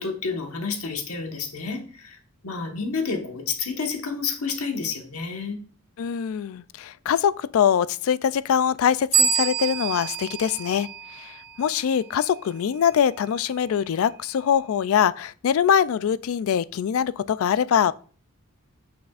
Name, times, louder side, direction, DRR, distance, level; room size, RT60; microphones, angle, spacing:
voice 1, 0.0-2.2 2.4-5.6, left 5 dB, 90° left, 1.4 m, -30 dB
voice 2, 6.0-17.9, left 8 dB, 75° left, 0.3 m, -23 dB
sound 1, 9.1-11.6, right 6 dB, 75° right, 0.7 m, -26 dB
9.3 x 6.0 x 2.4 m
head